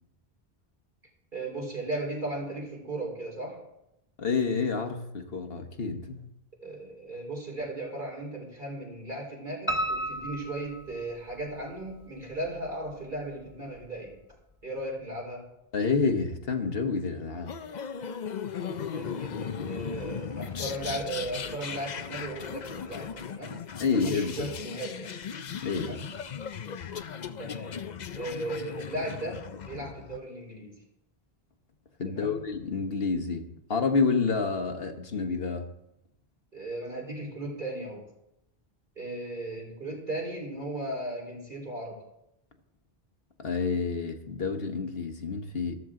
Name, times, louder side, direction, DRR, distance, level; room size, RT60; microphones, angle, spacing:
voice 1, 1.3-3.6 6.6-14.2 14.6-15.5 18.6-23.6 23.9-25.1 25.7-26.1 27.4-27.7 28.2-30.8 32.0-32.4 36.5-38.0 39.0-42.0, right 1 dB, 50° right, 4.5 m, -36 dB
voice 2, 4.2-6.3 15.7-17.6 23.8-24.5 25.5-25.9 32.0-35.7 43.4-45.8, left 4 dB, 70° left, 1.4 m, -29 dB
Piano, 9.7-11.6 12.0-12.9 13.2-13.3 13.8-13.9 14.1-14.2, right 1 dB, 30° left, 1.5 m, -33 dB
sound 1, 17.5-30.2, left 7 dB, 50° left, 0.7 m, -37 dB
14.0 x 13.5 x 3.8 m
omnidirectional pair, 1.0 m